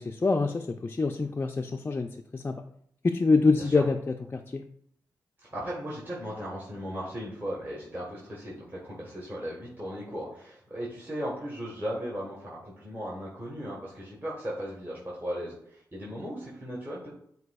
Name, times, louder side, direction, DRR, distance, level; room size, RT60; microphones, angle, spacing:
voice 1, 0.0-2.5 3.0-4.6, left 3 dB, 30° left, 4 dB, 0.3 m, -26 dB
voice 2, 5.4-17.1, equal, 25° right, -5 dB, 1.4 m, -37 dB
7.7 x 2.7 x 2.3 m, 0.66 s
supercardioid pair, 45°, 8 cm